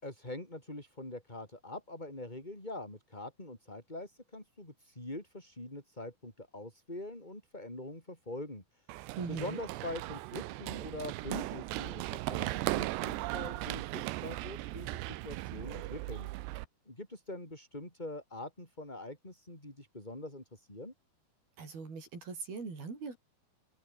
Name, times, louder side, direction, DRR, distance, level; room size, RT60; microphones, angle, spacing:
voice 1, 0.0-8.9 9.2-16.3 16.9-20.9, left 1 dB, 10° left, 6.0 m, -44 dB
Run, 8.9-16.7, right 18 dB, 85° right, 3.1 m, -37 dB
voice 2, 9.2-9.6 21.6-23.2, right 4 dB, 60° right, 8.6 m, -40 dB
omnidirectional pair, 4.9 m